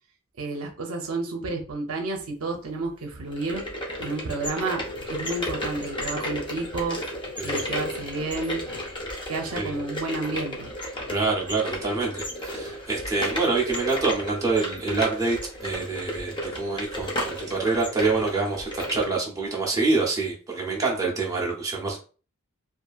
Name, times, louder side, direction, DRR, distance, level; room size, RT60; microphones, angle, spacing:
voice 1, 0.4-3.6 4.0-4.8 5.1-7.0 7.4-8.6 9.3-10.7, right 3 dB, 70° right, 2 dB, 0.6 m, -30 dB
sound 1, 3.2-19.1, equal, 20° left, 0.6 m, -33 dB
voice 2, 11.1-22.0, right 3 dB, 15° right, -2 dB, 0.7 m, -26 dB
2.7 x 2.5 x 2.3 m, 0.36 s
head